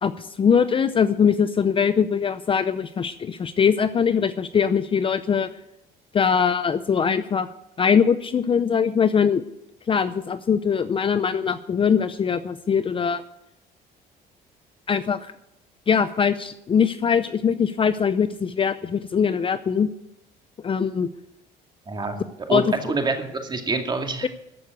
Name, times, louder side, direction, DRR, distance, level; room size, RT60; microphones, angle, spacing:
voice 1, 0.0-5.5 6.1-7.5 7.8-9.4 9.9-13.2 14.9-15.3 15.9-19.9 20.6-21.1 22.5-22.6, left 6 dB, 30° left, 12 dB, 0.6 m, -22 dB
voice 2, 21.9-22.2 22.5-24.3, right 3 dB, 25° right, 4 dB, 2.3 m, -26 dB
14.0 x 6.6 x 9.3 m, 0.83 s
cardioid pair, 110°, 17 cm